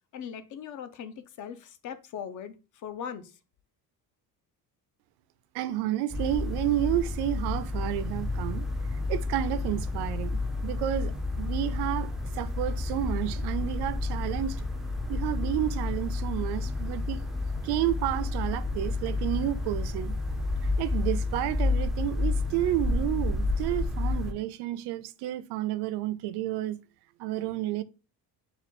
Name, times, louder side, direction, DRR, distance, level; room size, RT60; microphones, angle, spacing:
voice 1, 0.1-3.4, left 8 dB, 50° left, 0.5 m, -40 dB
voice 2, 5.5-8.7 8.9-11.1 11.4-14.7 15.1-17.2 17.6-20.2 20.6-26.8 27.2-27.8, right 13 dB, 80° right, 0.5 m, -31 dB
sound 1, 6.1-24.3, left 2 dB, ahead, 0.3 m, -30 dB
4.2 x 2.3 x 4.2 m
cardioid pair, 160°, 39 cm